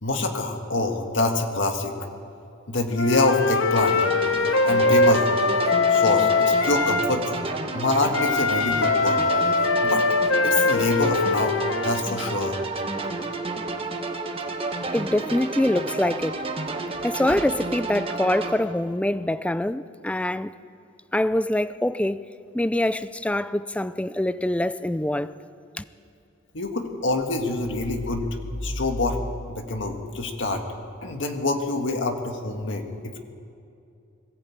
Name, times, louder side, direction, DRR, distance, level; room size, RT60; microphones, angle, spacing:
voice 1, 0.0-2.0 2.7-4.0 4.7-5.3 5.9-7.4 7.7-9.2 9.8-10.0 10.4-12.6 17.3-17.4 26.5-28.3 28.6-29.2 29.6-30.6 31.0-33.2, left 2 dB, 65° left, 1.8 m, -25 dB
Wind instrument woodwind instrument, 3.0-7.1 8.1-12.0, left 3 dB, 85° left, 0.9 m, -22 dB
sound 1, 3.8-18.5, right 2 dB, 30° right, 1.4 m, -31 dB
voice 2, 14.9-16.4 17.0-20.5 21.1-22.2 22.5-25.3 25.8-25.9, left 1 dB, 5° left, 0.4 m, -24 dB
21.5 x 15.0 x 8.7 m
head